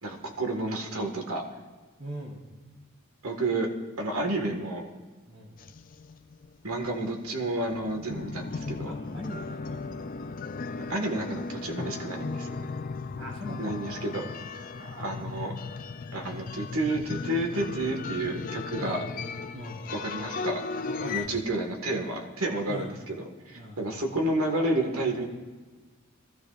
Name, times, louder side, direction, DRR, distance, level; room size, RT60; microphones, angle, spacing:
voice 1, 0.0-1.4 3.2-3.7 4.0-4.9 6.6-8.9 10.9-12.5 13.6-14.2 14.8-15.5 16.1-19.0 19.9-20.6 21.1-23.2 23.5-25.3, right 2 dB, 85° right, 2 dB, 1.9 m, -30 dB
voice 2, 2.0-2.4 5.3-5.6 8.8-10.1 13.2-13.7 14.0-14.2 18.8-19.0 19.5-19.8 20.8-21.3 22.7-22.9 23.5-23.8, equal, 65° right, -3 dB, 4.3 m, -40 dB
sound 1, 5.6-7.3 7.7-21.3, left 4 dB, 40° left, 0.4 m, -36 dB
22.5 x 14.0 x 2.6 m, 1.3 s
head